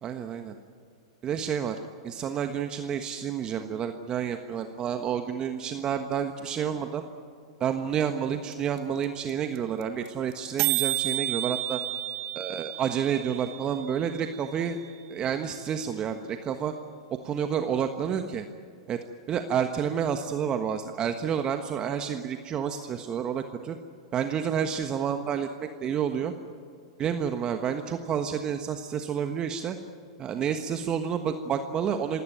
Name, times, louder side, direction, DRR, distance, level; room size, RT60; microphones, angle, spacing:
voice 1, 0.0-0.5 1.2-7.0 7.6-11.8 12.3-14.8 15.1-16.7 17.2-18.4 18.9-19.0 19.3-23.8 24.1-26.3 27.0-29.8 30.2-32.2, right 8 dB, 30° right, 7 dB, 1.4 m, -29 dB
sound 1, 8.5-8.6 8.8-8.9 9.0-9.3 9.5-9.6 9.8-10.1 10.3-10.4 10.6-14.6, right 17 dB, 45° right, 1.4 m, -31 dB
27.5 x 17.0 x 9.2 m, 2.3 s
hypercardioid pair, 105°, 3 cm